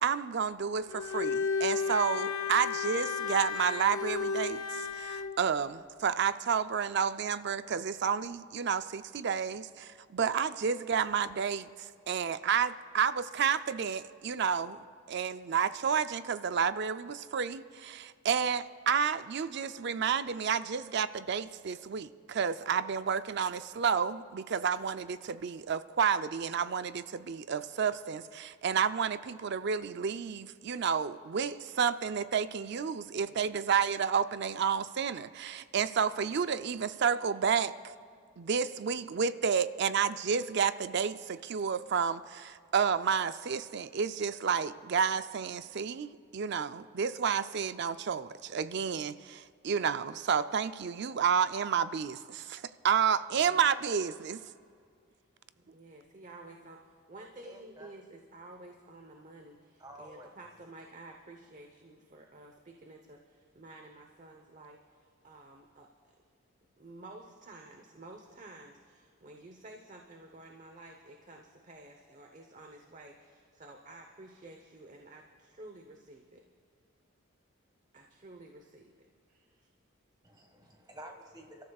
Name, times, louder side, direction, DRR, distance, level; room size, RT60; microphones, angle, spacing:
voice 1, 0.0-37.9 38.4-54.4, right 6 dB, 55° right, 13 dB, 0.4 m, -30 dB
Bowed string instrument, 0.9-5.4, left 5 dB, 85° left, 0.7 m, -33 dB
voice 2, 33.3-33.6 53.3-53.7 55.1-55.2 55.6-65.9 66.8-76.4 77.9-79.7, right 2 dB, 35° right, 3 dB, 0.9 m, -52 dB
voice 3, 57.4-58.0 59.8-60.3 80.2-81.6, equal, 20° right, 2 dB, 1.6 m, -50 dB
29.5 x 13.5 x 2.4 m, 2.2 s
head